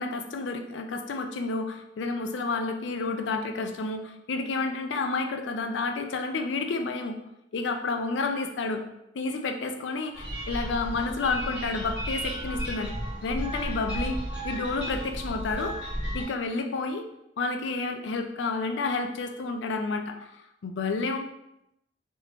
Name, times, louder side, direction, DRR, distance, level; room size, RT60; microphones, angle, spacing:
voice 1, 0.0-7.2 7.5-8.8 9.1-12.9 13.2-15.8 16.1-17.1 17.4-21.2, left 3 dB, 80° left, 6 dB, 0.4 m, -30 dB
sound 1, 10.1-16.2, equal, 5° right, 1.3 m, -34 dB
3.4 x 2.8 x 2.9 m, 0.85 s
head